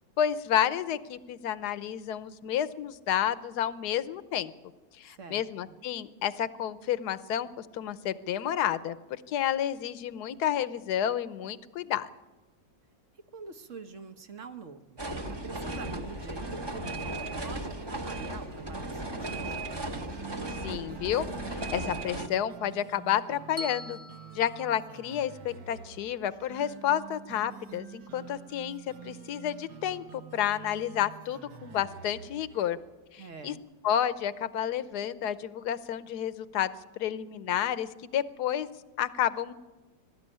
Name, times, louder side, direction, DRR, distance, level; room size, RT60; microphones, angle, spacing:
voice 1, 0.2-4.5 5.0-12.1 20.6-24.0 24.3-32.8 33.1-33.5 33.8-38.7 39.0-39.5, left 10 dB, 65° left, 15 dB, 1.3 m, -30 dB
voice 2, 5.2-5.7 13.3-15.0 15.3-19.7 33.2-33.6, right 5 dB, 45° right, 8 dB, 1.3 m, -45 dB
sound 1, 15.0-22.3, right 2 dB, 15° right, 1.0 m, -36 dB
sound 2, 19.9-32.7, right 11 dB, 65° right, 1.5 m, -48 dB
Bell, 23.6-25.7, left 1 dB, 20° left, 1.1 m, -44 dB
22.0 x 13.0 x 10.0 m, 1.2 s
omnidirectional pair, 2.0 m